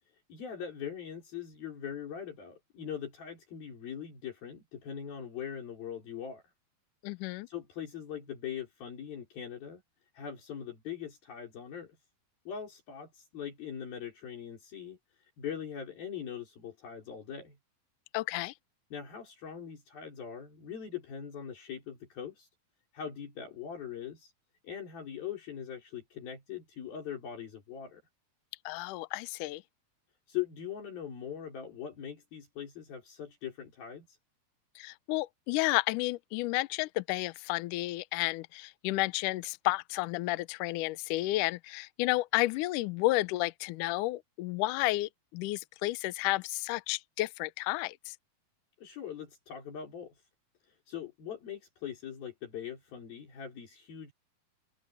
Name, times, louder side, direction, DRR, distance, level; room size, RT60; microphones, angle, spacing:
voice 1, 0.3-6.4 7.5-9.8 10.1-12.0 12.5-17.6 18.9-22.5 22.9-24.3 24.6-28.0 30.3-34.2 48.8-50.1 50.7-54.1, left 8 dB, 70° left, 6.3 m, -41 dB
voice 2, 7.0-7.5 18.1-18.5 28.7-29.6 34.8-48.2, left 19 dB, 90° left, 1.8 m, -31 dB
omnidirectional pair, 4.5 m